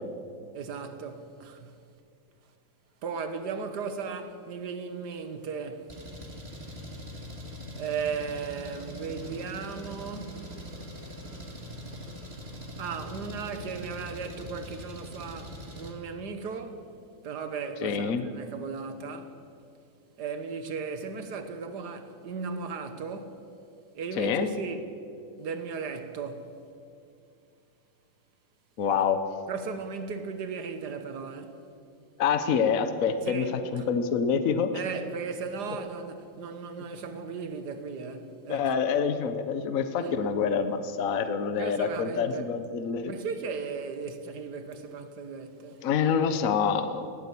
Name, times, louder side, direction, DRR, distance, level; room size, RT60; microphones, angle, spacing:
voice 1, 0.5-1.8 3.0-5.9 7.8-10.4 12.8-16.9 17.2-19.4 20.2-23.4 23.9-24.9 25.4-26.5 29.5-31.6 33.3-33.9 34.7-38.7 40.0-40.2 41.5-42.5 43.1-45.9, right 5 dB, 55° right, 1.9 m, -36 dB
Engine, 5.9-15.9, equal, 30° right, 2.6 m, -42 dB
voice 2, 17.8-18.2 24.2-24.5 28.8-29.2 32.2-33.4 33.7-34.7 38.5-43.1 45.8-47.1, left 6 dB, 50° left, 1.3 m, -26 dB
20.0 x 16.5 x 8.5 m
omnidirectional pair, 2.2 m